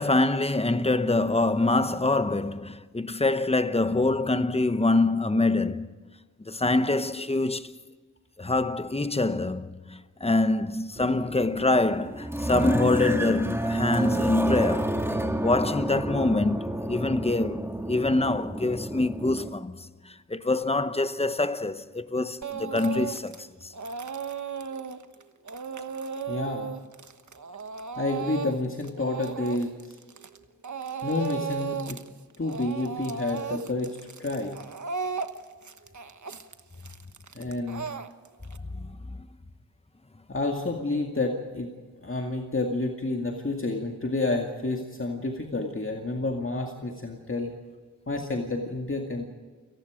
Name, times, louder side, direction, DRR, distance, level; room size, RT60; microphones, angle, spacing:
voice 1, 0.0-5.9 6.4-7.7 8.4-15.0 15.4-23.7 38.7-39.2, left 2 dB, 20° left, 1.0 m, -25 dB
sound 1, 11.0-19.5, right 1 dB, 10° right, 2.3 m, -30 dB
Speech / Crying sobbing, 22.4-23.4 23.7-30.4 30.6-32.1 32.3-38.6, right 6 dB, 70° right, 1.2 m, -35 dB
voice 2, 26.3-26.7 28.0-30.0 31.0-32.0 32.4-34.5 37.3-37.9 40.3-41.8 42.0-47.6 48.1-49.2, left 2 dB, 45° left, 2.2 m, -29 dB
29.0 x 18.5 x 5.1 m
wide cardioid pair, 75°, 30 cm